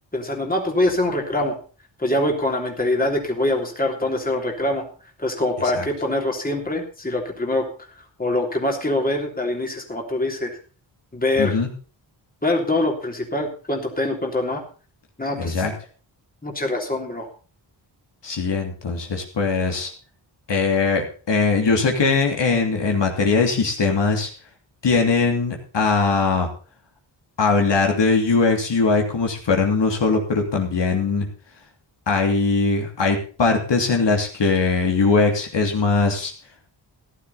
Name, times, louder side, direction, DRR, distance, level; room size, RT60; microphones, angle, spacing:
voice 1, 0.1-1.6 2.0-4.9 5.2-7.7 8.2-10.6 11.1-11.6 12.4-14.6 15.2-15.6 16.4-17.3, left 1 dB, 20° left, 1 dB, 3.2 m, -24 dB
voice 2, 11.4-11.7 15.3-15.7 18.2-19.9 20.5-24.3 24.8-26.5 27.4-31.3 32.1-36.3, left 4 dB, 65° left, 2 dB, 3.0 m, -20 dB
14.5 x 11.5 x 4.2 m, 0.37 s
wide cardioid pair, 85°, 46 cm